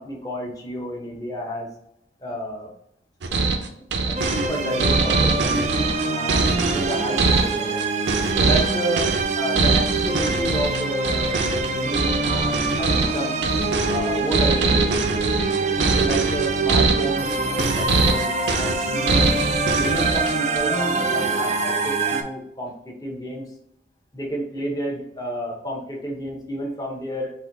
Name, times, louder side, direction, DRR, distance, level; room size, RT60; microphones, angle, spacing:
voice 1, 0.0-1.7 2.2-2.7 4.0-5.7 6.1-7.8 8.4-13.4 13.9-15.4 16.0-19.4 19.7-23.5 24.1-27.3, equal, 20° left, -1 dB, 0.8 m, -31 dB
sound 1, 3.2-20.6, right 3 dB, 90° right, 0.5 m, -23 dB
sound 2, 4.2-22.2, right 3 dB, 40° right, 0.4 m, -25 dB
4.3 x 2.6 x 3.8 m, 0.78 s
head